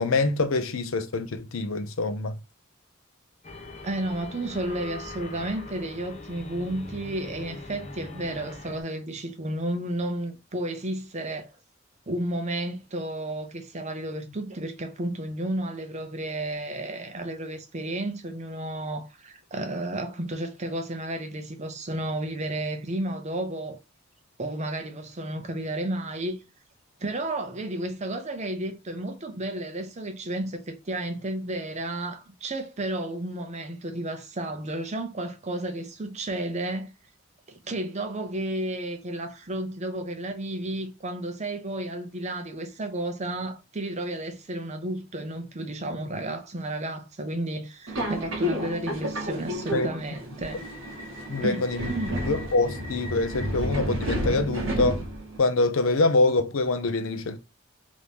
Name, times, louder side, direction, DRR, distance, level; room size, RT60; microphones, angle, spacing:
voice 1, 0.0-2.4 49.7-49.9 51.3-51.9 52.3-55.0 55.4-57.4, left 3 dB, 80° left, 0.6 m, -25 dB
sound 1, 3.4-8.8, left 2 dB, 35° left, 0.6 m, -41 dB
voice 2, 3.8-11.5 12.1-23.8 24.4-26.4 27.0-36.9 37.5-50.6 51.4-52.2, right 1 dB, 35° right, 0.7 m, -32 dB
Subway metro underground, 47.9-55.4, equal, 70° right, 1.0 m, -31 dB
3.1 x 2.7 x 3.4 m
head